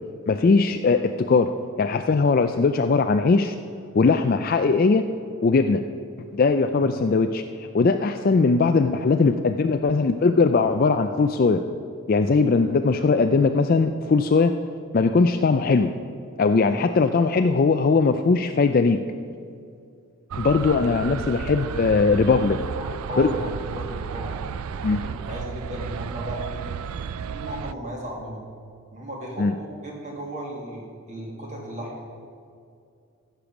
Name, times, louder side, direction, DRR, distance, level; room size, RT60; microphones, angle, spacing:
voice 1, 0.3-1.5 1.8-3.6 3.9-5.1 5.4-5.8 6.3-11.6 12.1-14.5 14.9-15.9 16.4-19.0 20.3-22.6 23.2-23.3 24.8-25.0 29.4-29.5, left 4 dB, 40° left, 7 dB, 0.3 m, -20 dB
sound 1, 20.3-27.7, right 7 dB, 80° right, 0.4 m, -33 dB
voice 2, 22.7-26.7 27.3-28.4 28.9-31.9, equal, 30° right, -2 dB, 2.0 m, -35 dB
15.0 x 6.8 x 5.9 m, 2.4 s
head